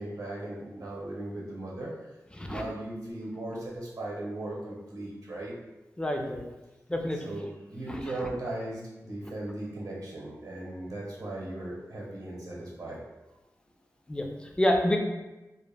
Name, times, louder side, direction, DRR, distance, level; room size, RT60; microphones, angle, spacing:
voice 1, 0.0-1.9 2.5-5.5 7.2-13.0, right 1 dB, 70° right, -4 dB, 0.8 m, -37 dB
voice 2, 6.0-6.4 6.9-7.2 7.9-8.3 14.1-15.0, left 1 dB, 15° left, 2 dB, 0.3 m, -28 dB
2.1 x 2.1 x 3.2 m, 1.0 s
wide cardioid pair, 95°, 6 cm